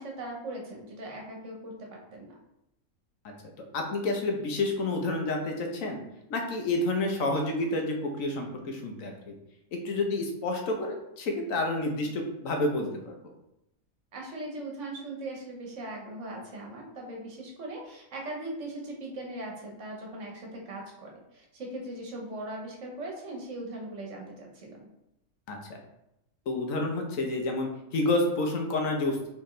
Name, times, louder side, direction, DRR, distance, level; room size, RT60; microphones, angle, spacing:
voice 1, 0.0-2.4 11.8-11.9 14.1-24.9, right 1 dB, 65° right, 0 dB, 1.3 m, -39 dB
voice 2, 3.7-6.0 6.3-9.3 9.7-13.1 25.5-25.6 26.5-29.2, left 2 dB, 75° left, 2 dB, 1.2 m, -29 dB
4.5 x 3.5 x 3.1 m, 0.84 s
omnidirectional pair, 1.4 m